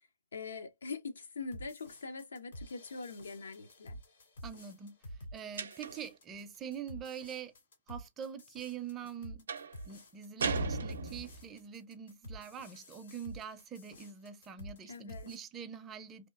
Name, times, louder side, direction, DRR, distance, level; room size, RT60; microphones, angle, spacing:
voice 1, 0.3-4.0 14.9-15.3, left 4 dB, 90° left, 0.6 m, -43 dB
sound 1, 1.5-15.4, equal, 70° left, 1.8 m, -50 dB
voice 2, 4.4-4.9 5.3-7.5 7.9-9.5 9.9-16.3, right 8 dB, 20° right, 0.4 m, -44 dB
sound 2, 5.6-6.2 9.5-9.8 10.4-11.5, right 4 dB, 85° right, 0.5 m, -36 dB
2.8 x 2.4 x 2.4 m
hypercardioid pair, 140°, 0 cm